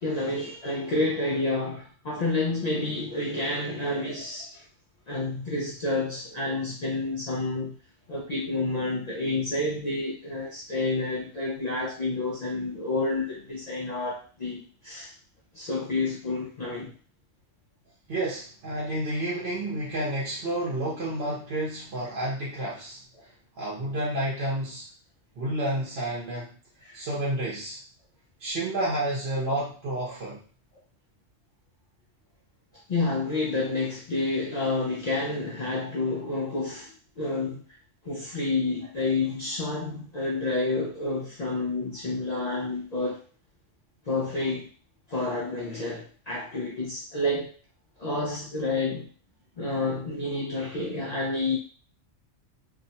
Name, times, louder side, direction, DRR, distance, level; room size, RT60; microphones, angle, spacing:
voice 1, 0.0-4.6 5.1-7.8 8.1-15.1 15.5-16.9 26.8-27.0 32.9-37.6 38.0-43.2 44.1-44.7 45.1-47.5 48.0-49.1 49.6-51.6, left 2 dB, 75° left, -3 dB, 0.3 m, -29 dB
voice 2, 18.1-23.0 23.6-24.8 25.4-26.5 26.9-27.8 28.4-30.4, right 1 dB, 60° right, -6 dB, 1.0 m, -30 dB
2.6 x 2.1 x 2.7 m, 0.39 s
omnidirectional pair, 1.3 m